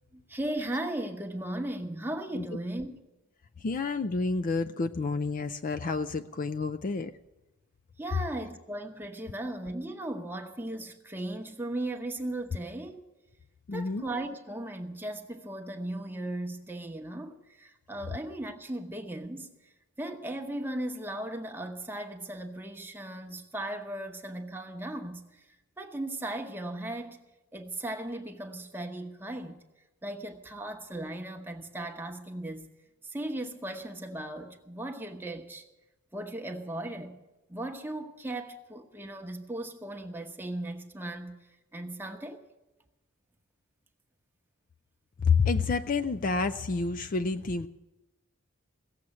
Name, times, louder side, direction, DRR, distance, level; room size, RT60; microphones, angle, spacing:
voice 1, 0.1-3.0 8.0-13.0 13.7-19.5 20.0-25.4 25.8-27.2 27.5-29.6 30.0-32.7 33.1-35.6 36.1-37.2 37.5-41.4 41.7-42.4, right 1 dB, 10° right, 1.0 m, -37 dB
voice 2, 3.6-7.1 13.7-14.0 45.2-47.7, left 4 dB, 40° left, 0.4 m, -29 dB
16.5 x 7.6 x 9.6 m
head